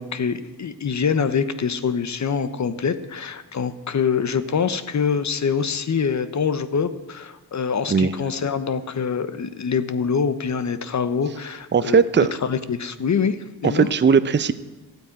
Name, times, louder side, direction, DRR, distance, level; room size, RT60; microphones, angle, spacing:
voice 1, 0.0-13.9, left 6 dB, 45° left, 12 dB, 1.0 m, -25 dB
voice 2, 11.7-12.3 13.6-14.5, right 6 dB, 30° right, 13 dB, 0.7 m, -18 dB
13.5 x 9.2 x 8.9 m, 1.2 s
cardioid pair, 85°, 38 cm